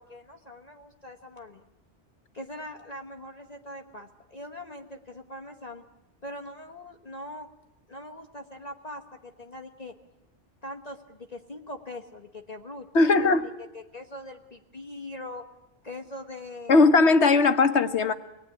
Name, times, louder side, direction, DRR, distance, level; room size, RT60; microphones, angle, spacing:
voice 1, 0.0-1.7 2.3-5.8 6.2-7.5 7.9-9.9 10.6-13.3 13.7-15.4 15.8-16.8, left 1 dB, 35° left, 4 dB, 1.3 m, -42 dB
voice 2, 12.9-13.5 16.7-18.1, left 3 dB, 70° left, 10 dB, 1.5 m, -19 dB
26.0 x 18.5 x 9.8 m, 0.97 s
omnidirectional pair, 1.2 m